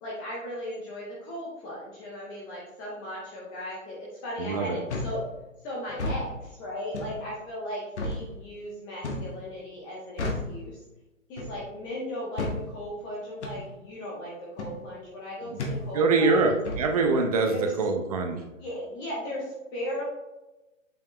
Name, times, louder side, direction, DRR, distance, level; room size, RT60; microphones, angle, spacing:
voice 1, 0.0-5.2 5.6-10.8 11.3-16.4 17.4-17.7 18.6-20.0, equal, 10° left, -5 dB, 0.6 m, -37 dB
voice 2, 4.4-4.8 15.5-15.6 15.9-18.4, right 3 dB, 30° right, 4 dB, 0.7 m, -24 dB
sound 1, 4.9-5.2 5.9-6.2 6.9-7.2 8.0-8.2 9.0-9.3 10.2-10.5 11.4-11.6 12.4-12.6 13.4-13.6 14.6-14.8 15.6-15.8 16.7-16.9, left 2 dB, 60° left, 1.5 m, -31 dB
7.6 x 5.2 x 3.0 m, 1.0 s
hypercardioid pair, 140°, 39 cm